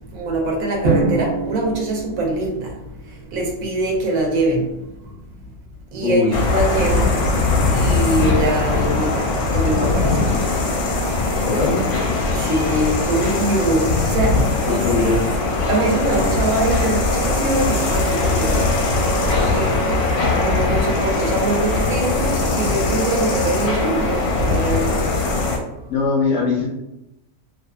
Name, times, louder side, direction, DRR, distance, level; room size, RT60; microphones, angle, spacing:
voice 1, 0.1-2.8 3.0-5.1 5.9-7.2 7.7-10.4 12.3-15.3 15.7-18.7 19.3-19.9 20.3-25.1, right 2 dB, 70° right, 0 dB, 1.0 m, -23 dB
Drum, 0.8-3.0, right 3 dB, 55° right, 0.7 m, -23 dB
voice 2, 6.0-6.3 11.5-11.8 14.7-15.2 25.9-26.7, left 4 dB, 65° left, -2 dB, 0.8 m, -20 dB
sound 1, 6.3-25.6, left 3 dB, 85° left, 1.2 m, -20 dB
2.7 x 2.3 x 2.3 m, 0.89 s
omnidirectional pair, 1.6 m